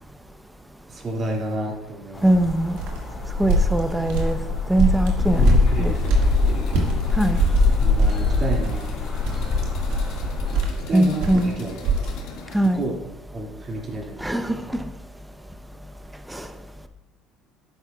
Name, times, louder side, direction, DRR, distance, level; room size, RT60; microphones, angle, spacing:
voice 1, 0.9-2.3 5.3-6.8 7.8-9.2 10.9-12.2 12.7-13.0 13.3-14.6, right 2 dB, 30° right, 0 dB, 2.2 m, -31 dB
sound 1, 2.1-10.6, left 4 dB, 10° left, 3.7 m, -23 dB
voice 2, 2.2-2.8 3.4-4.4 4.7-5.5 5.8-5.9 7.1-7.4 10.9-11.5 12.5-12.8 14.2-14.8 16.3-16.5, right 1 dB, 5° right, 8 dB, 0.6 m, -21 dB
sound 2, 2.8-7.0 7.3-12.1, right 4 dB, 80° right, 1.8 m, -25 dB
sound 3, 5.2-12.7, left 5 dB, 75° left, 1.8 m, -39 dB
11.5 x 9.4 x 2.3 m, 0.90 s
cardioid pair, 120°, 0 cm